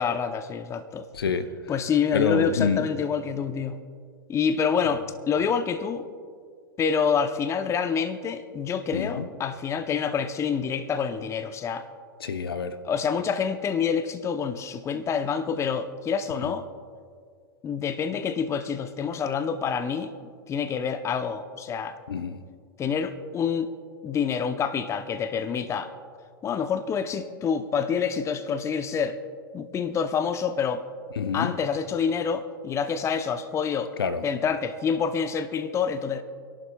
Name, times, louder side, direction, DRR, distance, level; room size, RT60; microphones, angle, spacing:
voice 1, 0.0-1.1 1.7-3.8 4.3-6.1 6.8-11.9 12.8-16.6 17.6-20.1 20.5-22.0 22.8-23.7 24.0-25.9 26.4-29.2 29.5-30.8 31.3-33.9 34.2-36.2, left 6 dB, 25° left, 0.7 m, -27 dB
voice 2, 1.1-1.5 2.1-2.9 8.9-9.3 12.2-12.8 22.1-22.4 31.2-31.5 34.0-34.2, left 6 dB, 80° left, 0.7 m, -26 dB
29.0 x 11.5 x 2.3 m
hypercardioid pair, 105°, 12 cm